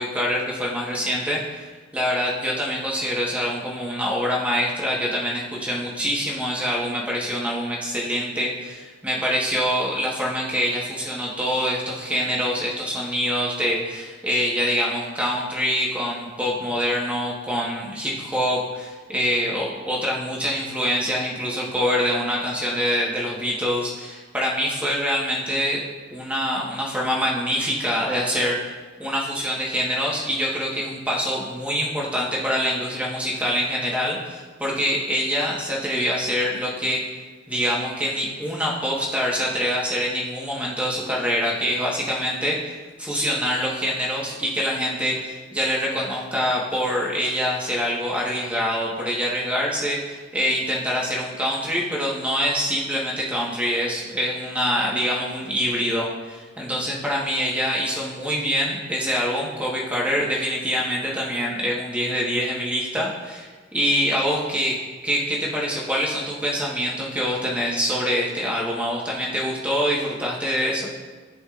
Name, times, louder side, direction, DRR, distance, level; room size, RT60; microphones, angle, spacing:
voice 1, 0.0-1.6 1.9-25.8 26.1-28.7 29.0-37.0 37.5-63.5 63.7-70.9, equal, 5° right, -4 dB, 1.4 m, -25 dB
14.5 x 5.1 x 2.5 m, 1.4 s
head